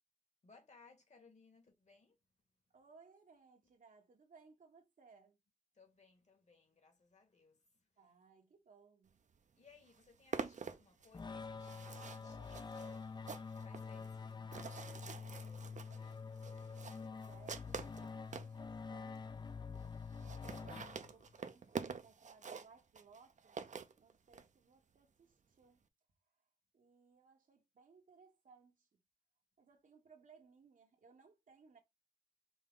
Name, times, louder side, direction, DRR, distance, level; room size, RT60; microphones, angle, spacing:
voice 1, 0.4-2.2 5.7-7.9 9.5-16.3, left 4 dB, 60° left, 1.9 m, -66 dB
voice 2, 2.7-5.4 8.0-9.2 17.0-19.3 19.8-23.6 24.0-25.8 26.7-29.0 29.6-31.8, right 5 dB, 80° right, 1.3 m, -64 dB
sound 1, 9.4-9.5 9.7-18.6 19.2-19.3 19.5-19.6 19.8-19.9 20.1-24.5, right 6 dB, 65° right, 0.6 m, -47 dB
sound 2, 11.1-21.4, left 5 dB, 35° left, 0.4 m, -47 dB
5.3 x 2.3 x 3.8 m
wide cardioid pair, 70°, 13 cm